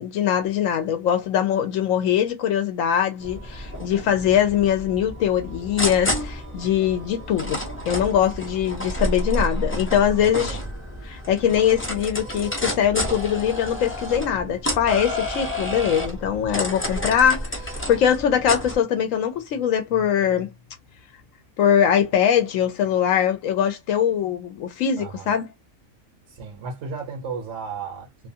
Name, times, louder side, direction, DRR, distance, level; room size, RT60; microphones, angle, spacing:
voice 1, 0.0-10.6 11.0-20.5 21.6-25.5, left 9 dB, 80° left, 0.9 m, -22 dB
sound 1, 3.2-18.8, equal, 15° left, 0.4 m, -30 dB
voice 2, 10.2-10.7 25.0-25.3 26.3-28.3, right 5 dB, 70° right, 1.1 m, -34 dB
2.6 x 2.3 x 2.7 m
omnidirectional pair, 1.3 m